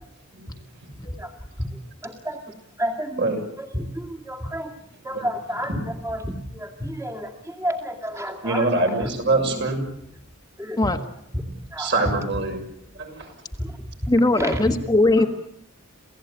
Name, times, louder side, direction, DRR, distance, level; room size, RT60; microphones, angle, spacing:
voice 1, 2.0-2.4 2.8-3.3 3.6-4.7 5.0-5.8 6.0-8.8 9.6-9.7 10.6-10.9 11.5-11.9 13.6-13.8 14.3-14.7, equal, 15° right, 3 dB, 2.2 m, -30 dB
voice 2, 8.4-9.8 11.8-12.6 13.0-13.3 15.2-15.3, right 2 dB, 55° right, 3 dB, 6.7 m, -24 dB
voice 3, 14.1-15.3, left 2 dB, 20° left, 5 dB, 1.4 m, -19 dB
28.5 x 17.0 x 8.8 m, 0.75 s
head